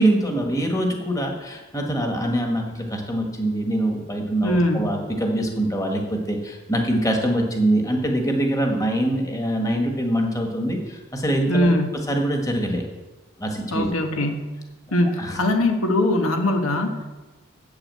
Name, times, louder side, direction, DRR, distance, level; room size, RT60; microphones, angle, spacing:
voice 1, 0.0-11.7 12.1-12.8 13.4-13.9 15.2-15.4, right 1 dB, 15° left, 2 dB, 1.5 m, -24 dB
voice 2, 4.4-4.9 11.5-12.0 13.7-14.5 14.9-17.1, left 1 dB, 90° left, 4 dB, 1.4 m, -21 dB
8.8 x 8.3 x 7.6 m, 1.2 s
head